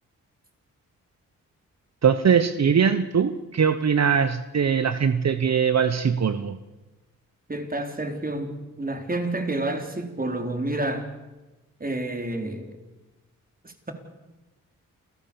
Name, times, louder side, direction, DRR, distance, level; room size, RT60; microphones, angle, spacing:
voice 1, 2.0-6.6, right 7 dB, 50° right, 11 dB, 1.1 m, -21 dB
voice 2, 7.5-11.1 11.8-12.8 13.6-13.9, right 2 dB, 25° right, 5 dB, 4.1 m, -29 dB
29.0 x 14.0 x 7.2 m, 1.1 s
cardioid pair, 55°, 33 cm